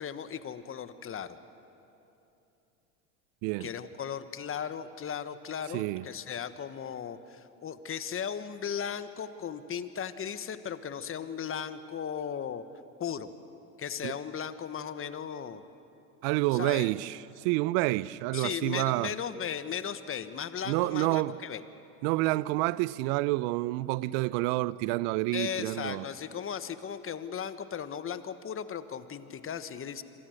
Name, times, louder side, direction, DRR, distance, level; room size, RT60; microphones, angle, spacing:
voice 1, 0.0-1.4 3.6-12.6 13.0-13.3 13.8-15.6 16.5-16.9 18.3-21.6 25.3-30.0, left 8 dB, 30° left, 1.3 m, -36 dB
voice 2, 5.7-6.0 14.0-14.1 16.2-19.1 20.7-21.4 22.0-26.1, right 19 dB, 60° right, 0.7 m, -28 dB
27.5 x 24.0 x 6.6 m
hypercardioid pair, 90°, 45 cm